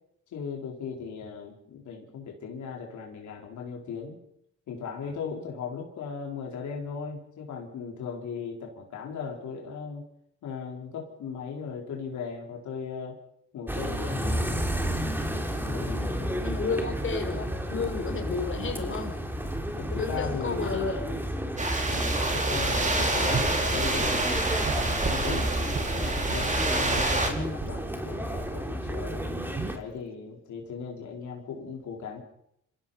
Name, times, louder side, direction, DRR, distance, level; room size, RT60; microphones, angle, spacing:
voice 1, 0.3-4.2 4.7-10.0 10.4-13.2 13.5-14.7 15.6-16.2 19.8-20.7 21.9-24.2 24.7-29.3 29.7-32.2, left 6 dB, 70° left, 0 dB, 4.6 m, -37 dB
sound 1, 13.7-29.8, equal, 5° right, 3.4 m, -32 dB
voice 2, 16.0-19.1 19.9-21.3, left 4 dB, 40° left, 4 dB, 5.2 m, -32 dB
sound 2, 21.6-27.3, right 2 dB, 25° right, 4.9 m, -27 dB
Gurgling / Sink (filling or washing) / Liquid, 23.3-23.6 24.5-27.2 27.6-27.9 28.4-28.6 29.5-29.8, right 6 dB, 45° right, 1.6 m, -36 dB
27.5 x 16.5 x 5.8 m, 0.76 s
cardioid pair, 90°, 30 cm